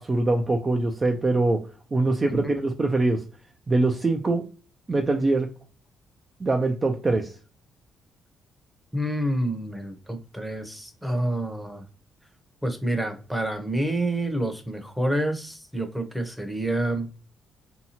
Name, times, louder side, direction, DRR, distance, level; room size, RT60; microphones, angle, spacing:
voice 1, 0.0-1.6 1.9-3.2 3.7-4.5 4.9-5.5 6.4-7.3, right 2 dB, 30° right, 3 dB, 0.4 m, -23 dB
voice 2, 8.9-11.8 12.6-17.1, right 1 dB, ahead, 5 dB, 0.7 m, -28 dB
2.8 x 2.2 x 2.8 m, 0.35 s
cardioid pair, 90°, 0 cm